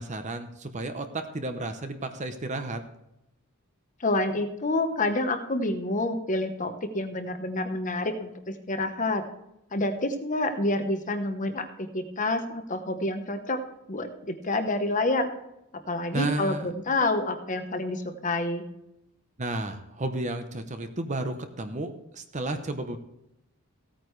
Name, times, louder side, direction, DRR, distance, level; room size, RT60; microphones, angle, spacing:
voice 1, 0.0-2.8 16.1-16.7 19.4-23.0, right 2 dB, 35° right, 8 dB, 0.8 m, -32 dB
voice 2, 4.0-9.2 9.7-13.6 13.9-15.3 15.9-18.6, left 2 dB, 35° left, 7 dB, 0.9 m, -28 dB
16.0 x 9.0 x 3.2 m, 0.86 s
head